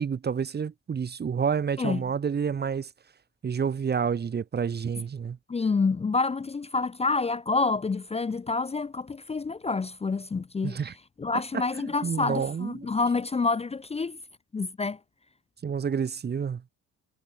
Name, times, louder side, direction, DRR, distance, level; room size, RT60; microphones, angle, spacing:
voice 1, 0.0-2.9 3.4-5.4 10.6-10.9 11.5-12.9 15.6-16.6, right 6 dB, 35° right, 0.9 m, -29 dB
voice 2, 5.5-10.8 11.2-14.2 14.5-15.0, left 4 dB, 20° left, 0.6 m, -28 dB
cardioid pair, 90°, 30 cm